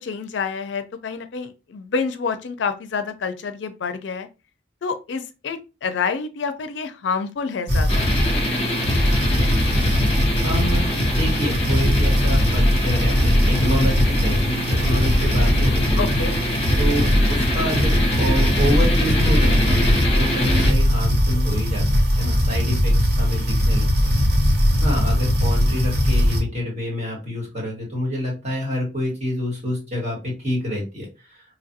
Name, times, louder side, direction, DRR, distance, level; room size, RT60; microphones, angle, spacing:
voice 1, 0.0-4.3 4.8-8.1 16.0-16.4, left 5 dB, 70° left, 0.4 m, -28 dB
sound 1, 7.7-26.4, equal, 60° right, 0.9 m, -20 dB
sound 2, 7.9-20.7, left 1 dB, 30° left, 0.8 m, -26 dB
voice 2, 10.4-16.2 16.8-24.1 24.8-31.4, left 1 dB, 35° right, 1.5 m, -27 dB
3.2 x 2.4 x 2.6 m
head